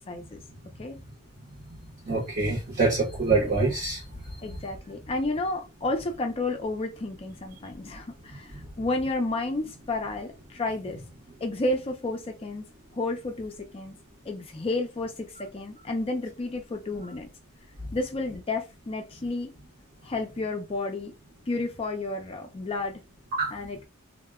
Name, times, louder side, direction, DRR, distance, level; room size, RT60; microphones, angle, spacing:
voice 1, 0.1-0.4 0.8-1.0 4.4-11.0 11.4-12.6 12.9-13.9 14.3-17.3 17.9-19.5 20.0-21.1 21.5-23.0 23.5-23.8, left 2 dB, 25° left, 0.4 m, -31 dB
voice 2, 2.1-4.0 23.4-23.5, right 3 dB, 40° right, 0.8 m, -25 dB
2.1 x 2.1 x 3.4 m
head